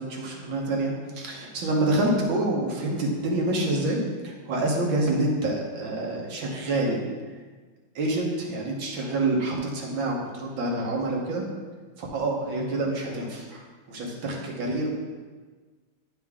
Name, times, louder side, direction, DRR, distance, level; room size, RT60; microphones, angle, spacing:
voice 1, 0.0-7.0 8.0-11.5 12.0-14.9, right 2 dB, 70° right, -1 dB, 1.9 m, -27 dB
10.5 x 4.5 x 3.6 m, 1.4 s
omnidirectional pair, 2.2 m